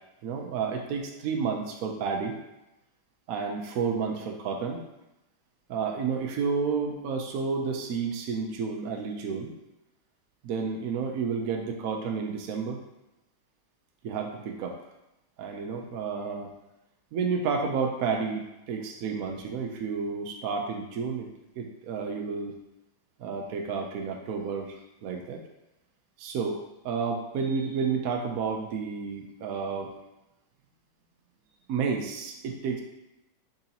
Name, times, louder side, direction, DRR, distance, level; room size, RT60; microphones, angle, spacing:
voice 1, 0.2-2.4 3.3-4.8 5.7-9.5 10.4-12.8 14.0-14.8 15.4-16.5 17.1-21.3 21.6-22.5 23.2-25.4 26.2-29.9 31.7-32.8, right 5 dB, 70° right, 2 dB, 0.9 m, -31 dB
4.8 x 3.8 x 2.8 m, 0.91 s
omnidirectional pair, 2.0 m